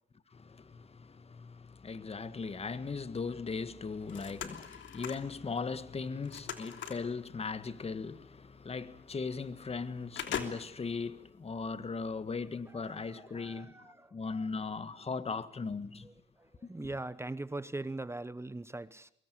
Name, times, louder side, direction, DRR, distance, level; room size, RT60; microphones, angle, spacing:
voice 1, 0.3-16.1 16.7-16.9, left 4 dB, 30° left, 1.8 m, -38 dB
sound 1, 3.8-5.3 5.8-7.1 8.3-8.4 8.8-8.9 9.3-9.8 10.1-10.9 11.4-11.5, left 8 dB, 70° left, 3.2 m, -41 dB
voice 2, 4.1-4.5 12.8-14.1 16.0-16.1 16.4-19.1, right 2 dB, 15° right, 1.0 m, -41 dB
24.5 x 23.0 x 9.6 m
cardioid pair, 90°, 20 cm